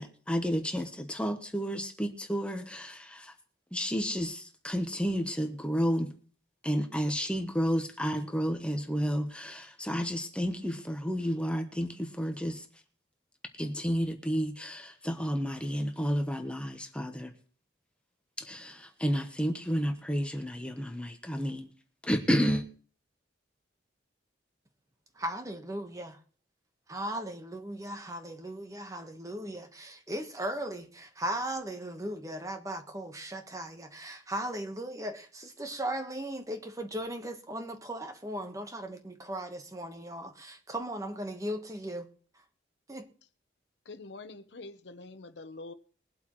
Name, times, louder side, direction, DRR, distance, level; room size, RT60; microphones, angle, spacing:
voice 1, 0.0-3.3 3.7-6.1 6.6-12.7 13.6-17.3 18.4-21.7 22.0-22.6, equal, 5° left, 1.0 m, -31 dB
voice 2, 25.2-26.2 26.9-42.1 42.9-43.1, right 1 dB, 20° right, 1.2 m, -37 dB
voice 3, 43.9-45.7, left 3 dB, 70° left, 0.9 m, -45 dB
22.0 x 8.1 x 3.1 m
head